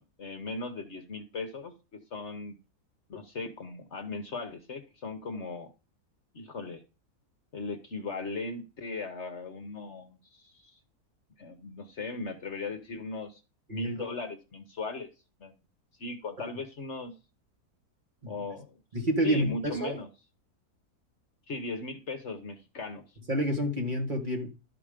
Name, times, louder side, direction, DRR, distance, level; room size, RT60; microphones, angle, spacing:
voice 1, 0.0-2.6 3.1-5.7 6.3-6.8 7.5-10.8 11.4-13.4 13.7-15.1 15.4-15.6 16.0-17.1 18.3-18.8 19.2-20.1 21.5-23.0, left 3 dB, 50° left, 1.2 m, -38 dB
voice 2, 18.9-20.0 23.3-24.6, equal, 30° right, 1.6 m, -29 dB
12.0 x 5.0 x 5.0 m
omnidirectional pair, 1.7 m